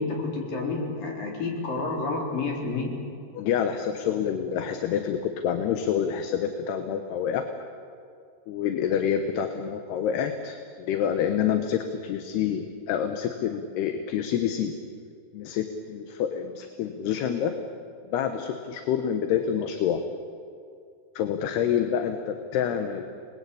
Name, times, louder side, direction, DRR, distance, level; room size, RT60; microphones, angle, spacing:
voice 1, 0.0-2.9, left 3 dB, 55° left, -1 dB, 5.8 m, -29 dB
voice 2, 3.3-7.5 8.5-14.7 15.3-17.5 18.1-20.0 21.2-23.1, left 8 dB, 75° left, 6 dB, 3.2 m, -27 dB
29.5 x 21.0 x 8.6 m, 2.4 s
omnidirectional pair, 4.8 m